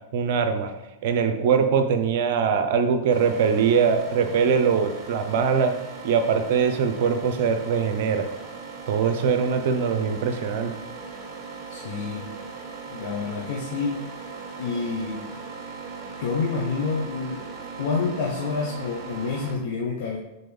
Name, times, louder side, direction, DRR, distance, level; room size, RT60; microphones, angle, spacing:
voice 1, 0.1-0.7 1.0-5.8 6.0-8.3 8.9-10.7, right 6 dB, 55° right, 7 dB, 0.7 m, -22 dB
sound 1, 3.1-19.5, right 4 dB, 25° right, 1.6 m, -39 dB
voice 2, 11.7-12.3 12.9-14.0 14.6-15.2 16.2-17.5 17.8-20.2, left 4 dB, 55° left, -3 dB, 0.9 m, -28 dB
7.6 x 4.0 x 3.4 m, 0.95 s
figure-of-eight pair, 95°, 0 cm